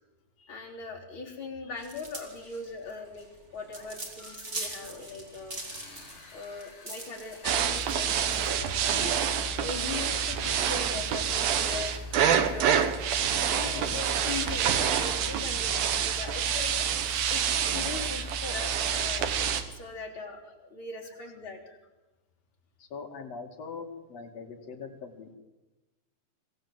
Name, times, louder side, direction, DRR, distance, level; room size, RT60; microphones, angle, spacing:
voice 1, 0.4-3.3 3.5-5.6 6.3-9.3 9.6-12.0 12.3-12.9 13.4-16.9 17.3-19.4 19.7-21.6, left 3 dB, 35° left, -2 dB, 4.3 m, -40 dB
sound 1, 1.8-9.0, right 1 dB, 20° right, 3.0 m, -42 dB
sound 2, 5.5-19.6, left 3 dB, 75° left, 7.1 m, -52 dB
voice 2, 6.6-7.7 8.3-8.4 9.4-9.5 10.0-10.8 11.1-11.6 11.8-13.1 13.6-14.0 14.5-15.0 16.2-17.6 18.0-18.3 18.9-19.4 20.2-20.4 21.0-21.2 21.7-21.8 22.8-25.4, left 5 dB, 50° left, 2 dB, 3.3 m, -47 dB
sound 3, 7.4-19.6, right 8 dB, 80° right, 3.2 m, -27 dB
25.0 x 17.0 x 7.8 m, 1.1 s
omnidirectional pair, 4.1 m